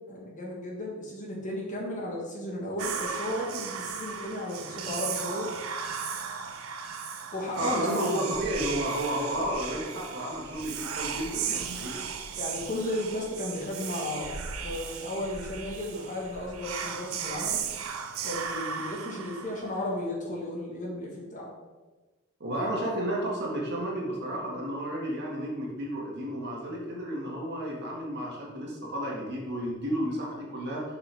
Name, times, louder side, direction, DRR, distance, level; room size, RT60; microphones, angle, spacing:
voice 1, 0.1-5.5 7.3-8.3 12.3-14.3 14.6-17.6 18.2-21.5, left 1 dB, 35° left, -2 dB, 1.5 m, -34 dB
Whispering, 2.8-19.9, right 6 dB, 85° right, 0.7 m, -36 dB
voice 2, 7.6-11.9 22.4-30.8, right 1 dB, 50° right, -3 dB, 1.8 m, -32 dB
7.4 x 5.7 x 3.5 m, 1.3 s
head